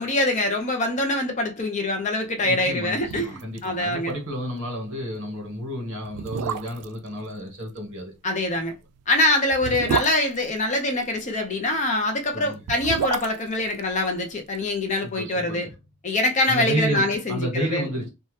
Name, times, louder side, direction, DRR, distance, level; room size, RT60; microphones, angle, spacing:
voice 1, 0.0-4.1 8.2-8.7 9.1-15.7 16.0-17.9, left 2 dB, 30° left, 0.5 m, -24 dB
voice 2, 2.4-8.1 12.3-12.6 15.0-15.7 16.5-18.1, equal, 55° right, 1.4 m, -31 dB
sound 1, 2.6-2.7 3.0-3.7 3.9-4.0 4.4-4.6 5.3-5.4 6.1-7.0 8.5-11.2 12.4-14.7 14.9-15.0, right 7 dB, 80° right, 0.3 m, -31 dB
2.7 x 2.2 x 3.2 m
head